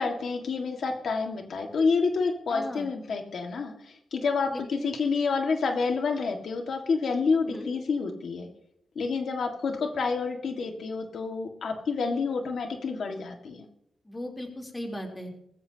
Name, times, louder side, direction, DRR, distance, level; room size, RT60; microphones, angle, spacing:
voice 1, 0.0-8.5 9.0-13.7, left 4 dB, 70° left, 3 dB, 1.9 m, -28 dB
voice 2, 2.5-2.9 4.5-4.9 7.5-7.7 14.0-15.3, equal, 15° left, 1 dB, 3.5 m, -37 dB
21.0 x 15.0 x 2.9 m, 0.74 s
wide cardioid pair, 125°, 0 cm